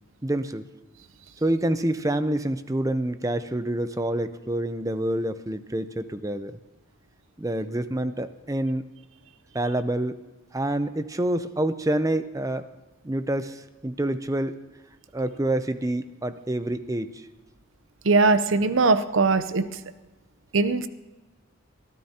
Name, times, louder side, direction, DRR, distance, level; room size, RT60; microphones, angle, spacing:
voice 1, 0.2-0.6 1.4-6.6 7.4-8.8 9.5-10.2 10.5-12.7 13.0-14.6 15.1-17.2, right 1 dB, 15° right, 11 dB, 0.5 m, -27 dB
voice 2, 18.0-19.7 20.5-20.9, right 3 dB, 65° right, 12 dB, 0.7 m, -20 dB
21.5 x 14.5 x 2.9 m, 1.1 s
head